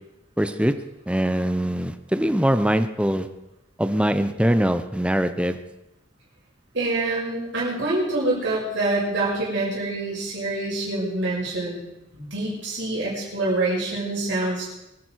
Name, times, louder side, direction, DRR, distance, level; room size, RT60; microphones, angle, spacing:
voice 1, 0.4-0.7 1.1-3.3 3.8-5.6, equal, 5° right, 9 dB, 0.8 m, -22 dB
voice 2, 6.7-11.8 12.1-14.6, right 2 dB, 65° right, -6 dB, 6.2 m, -26 dB
24.5 x 10.0 x 4.7 m, 0.93 s
head